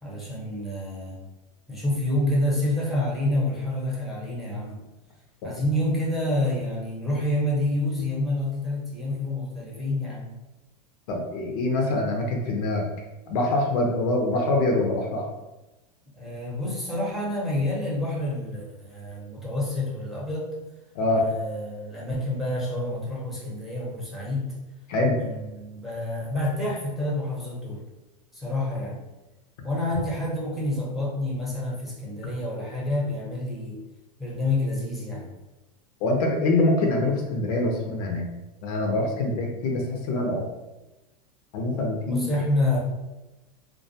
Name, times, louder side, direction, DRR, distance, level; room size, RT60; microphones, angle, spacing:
voice 1, 0.0-1.2 1.7-4.7 5.4-10.3 16.2-20.5 21.2-24.6 25.1-27.8 28.3-29.0 29.6-33.8 34.2-35.3 42.1-42.8, left 1 dB, ahead, -5 dB, 0.7 m, -28 dB
voice 2, 11.1-12.9 13.3-15.3 20.9-21.3 24.9-25.2 36.0-38.3 38.6-40.5 41.5-42.3, left 2 dB, 65° left, 1 dB, 0.6 m, -24 dB
2.3 x 2.2 x 2.7 m, 1.0 s
hypercardioid pair, 115°, 21 cm